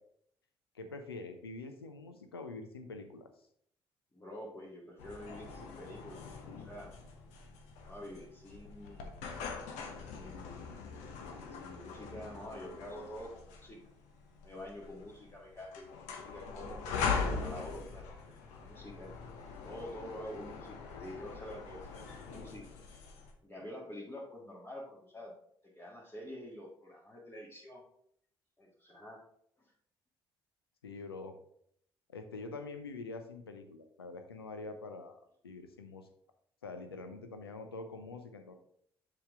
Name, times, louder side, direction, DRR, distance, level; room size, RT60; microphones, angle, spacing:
voice 1, 0.7-3.3 30.8-31.3 32.1-36.1 36.6-38.5, left 3 dB, 90° left, 7 dB, 0.6 m, -45 dB
voice 2, 4.1-6.2 6.6-6.9 7.8-9.2 10.1-10.7 11.5-13.8 14.4-15.8 16.2-19.1 19.6-22.7 23.4-25.3 25.7-27.8 28.6-29.2 29.6-29.7, left 1 dB, 20° left, -5 dB, 1.8 m, -47 dB
Chris' Elevator, 5.0-23.3, left 5 dB, 70° left, 1.0 m, -42 dB
7.1 x 5.0 x 3.7 m, 0.68 s
figure-of-eight pair, 45°, 12 cm